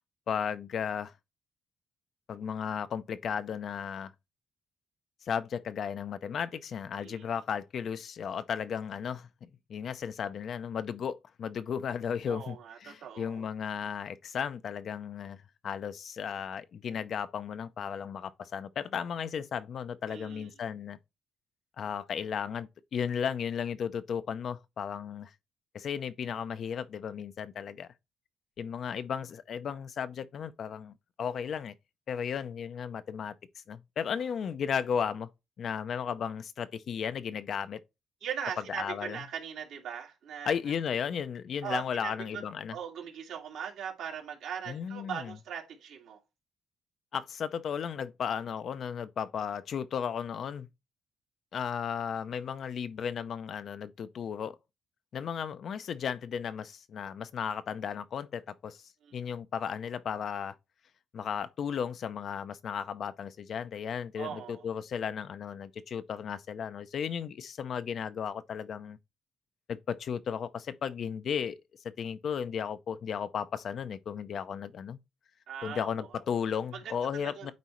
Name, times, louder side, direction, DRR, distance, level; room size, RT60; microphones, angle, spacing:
voice 1, 0.3-1.1 2.3-4.1 5.2-15.4 15.6-21.0 21.8-25.3 25.7-27.9 28.6-31.7 32.1-33.3 33.7-35.3 35.6-37.8 38.7-39.2 40.5-42.7 44.7-45.3 47.1-50.7 51.5-54.6 55.1-58.8 59.1-60.6 61.1-69.0 69.7-71.6 71.8-75.0 75.6-77.5, left 7 dB, 60° left, 0.6 m, -35 dB
voice 2, 7.0-7.3 12.3-13.5 20.0-20.5 38.2-40.5 41.6-42.4 42.7-46.2 59.0-59.2 64.2-64.7 75.5-76.1 76.7-77.5, right 8 dB, 80° right, 2.2 m, -40 dB
9.3 x 4.1 x 3.1 m
cardioid pair, 90°, 0 cm